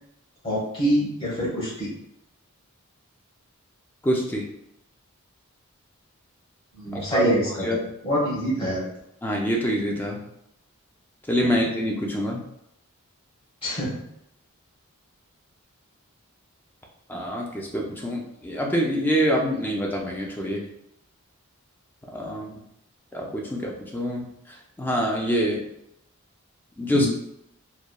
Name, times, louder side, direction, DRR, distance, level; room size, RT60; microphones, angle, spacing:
voice 1, 0.4-1.9 6.8-7.4 8.0-8.8 11.5-11.6 13.6-14.0 26.9-27.1, equal, 25° left, -7 dB, 1.0 m, -25 dB
voice 2, 4.0-4.5 6.9-7.3 7.6-7.8 9.2-10.2 11.3-12.4 17.1-20.6 22.1-22.6 23.1-24.3 24.8-25.6 26.8-27.1, equal, 10° left, -1 dB, 0.3 m, -25 dB
3.0 x 2.1 x 2.3 m, 0.79 s
head